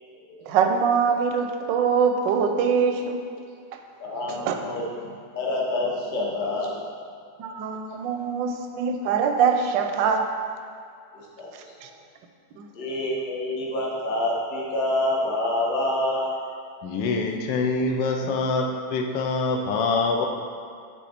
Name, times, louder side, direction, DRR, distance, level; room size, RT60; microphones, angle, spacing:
voice 1, 0.5-3.2 3.7-3.8 4.5-4.6 7.4-10.3 11.8-11.9 12.6-12.7, right 6 dB, 90° right, 5 dB, 1.3 m, -23 dB
voice 2, 4.0-6.8 11.1-12.0 12.7-16.3, left 1 dB, 35° left, -4 dB, 0.9 m, -27 dB
voice 3, 16.8-20.3, left 3 dB, 80° left, 3 dB, 1.3 m, -25 dB
8.3 x 3.6 x 4.2 m, 2.3 s
omnidirectional pair, 1.9 m